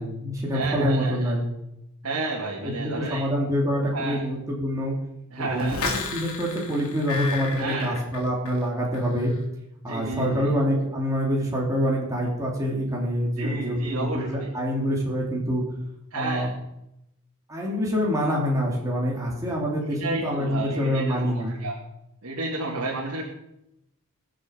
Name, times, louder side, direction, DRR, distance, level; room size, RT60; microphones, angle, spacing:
voice 1, 0.0-1.4 2.6-4.9 5.4-9.3 9.8-15.6 16.1-16.5 17.5-21.6, equal, 15° right, -3 dB, 3.1 m, -26 dB
voice 2, 0.5-1.3 2.0-3.2 3.9-4.2 5.3-5.8 7.6-8.0 9.9-10.5 13.4-14.5 16.1-16.5 19.8-21.8 22.2-23.2, right 2 dB, 75° right, -3 dB, 2.5 m, -31 dB
sound 1, 5.6-8.7 8.9-9.4, left 3 dB, 75° left, 3.2 m, -33 dB
21.5 x 7.7 x 5.3 m, 0.87 s
head